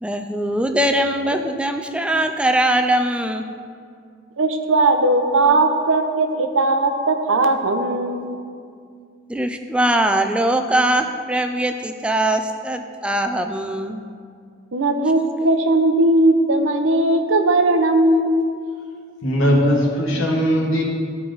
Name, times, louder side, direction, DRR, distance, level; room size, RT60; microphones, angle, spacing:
voice 1, 0.0-3.4 9.3-14.0, right 1 dB, 5° right, 5 dB, 0.3 m, -21 dB
voice 2, 4.4-8.4 14.7-18.5, right 2 dB, 80° right, 6 dB, 0.7 m, -18 dB
voice 3, 19.2-20.8, equal, 85° left, -2 dB, 1.6 m, -19 dB
13.5 x 4.6 x 3.9 m, 2.3 s
head